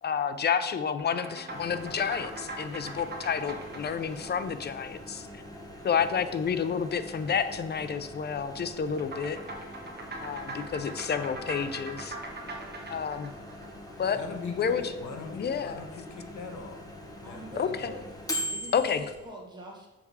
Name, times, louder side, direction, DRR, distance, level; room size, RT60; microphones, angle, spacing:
voice 1, 0.0-5.3 5.8-9.4 10.2-12.2 12.9-13.3 14.0-14.2 14.6-14.8 15.3-15.8 17.6-17.9 18.7-19.0, left 7 dB, 35° left, 10 dB, 0.5 m, -30 dB
sound 1, 1.0-5.6 9.0-14.4, right 2 dB, 35° right, 1.2 m, -42 dB
Microwave oven, 1.5-19.3, left 1 dB, 10° left, 1.1 m, -43 dB
voice 2, 14.0-17.8, left 5 dB, 70° left, 4 dB, 1.2 m, -41 dB
voice 3, 17.2-18.0 18.5-19.9, right 1 dB, 15° right, -2 dB, 1.7 m, -44 dB
6.9 x 3.6 x 4.7 m, 1.0 s
cardioid pair, 90°, 30 cm